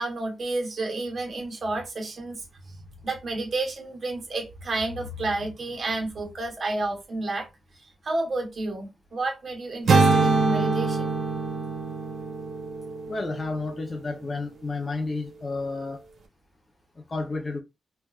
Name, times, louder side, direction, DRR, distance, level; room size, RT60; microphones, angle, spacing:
voice 1, 0.0-2.4 3.0-7.5 8.0-11.1, right 2 dB, 55° right, 1.3 m, -30 dB
sound 1, 9.9-13.9, right 3 dB, 75° right, 1.0 m, -24 dB
voice 2, 13.1-16.0 17.1-17.6, left 3 dB, 40° left, 0.7 m, -31 dB
4.7 x 2.4 x 2.4 m
cardioid pair, 90°, 0 cm